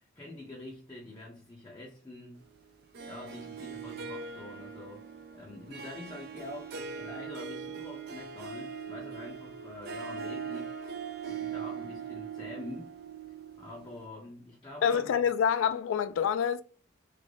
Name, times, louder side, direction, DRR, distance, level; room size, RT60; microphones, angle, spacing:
voice 1, 0.0-2.5 3.0-10.8 11.3-12.9 13.6-15.2, left 2 dB, 20° left, 0.7 m, -46 dB
Harp, 2.9-14.1, right 6 dB, 55° right, 0.5 m, -41 dB
voice 2, 14.8-16.6, left 7 dB, 80° left, 0.3 m, -27 dB
3.3 x 2.1 x 3.7 m
head